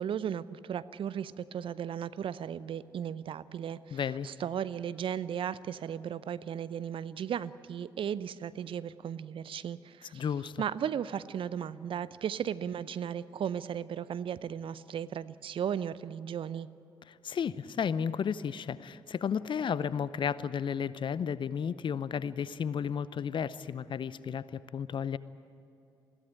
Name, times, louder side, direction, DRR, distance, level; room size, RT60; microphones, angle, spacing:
voice 1, 0.0-10.2 10.6-16.7, right 8 dB, 55° right, 16 dB, 0.6 m, -36 dB
voice 2, 3.9-4.3 10.1-10.6 17.1-25.2, left 7 dB, 50° left, 17 dB, 0.7 m, -33 dB
21.5 x 16.5 x 9.9 m, 2.7 s
hypercardioid pair, 40°, 11 cm